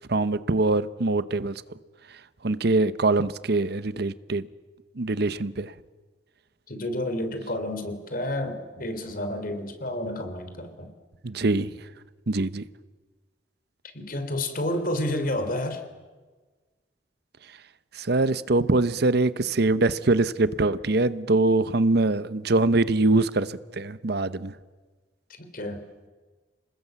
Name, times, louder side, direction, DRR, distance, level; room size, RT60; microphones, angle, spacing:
voice 1, 0.1-1.6 2.4-4.4 5.0-5.7 11.2-11.7 12.3-12.6 17.9-24.5, right 2 dB, 65° right, 0.8 m, -23 dB
voice 2, 6.7-10.9 13.9-15.8 25.5-25.8, left 1 dB, 55° left, 3.5 m, -30 dB
28.0 x 20.0 x 8.1 m
head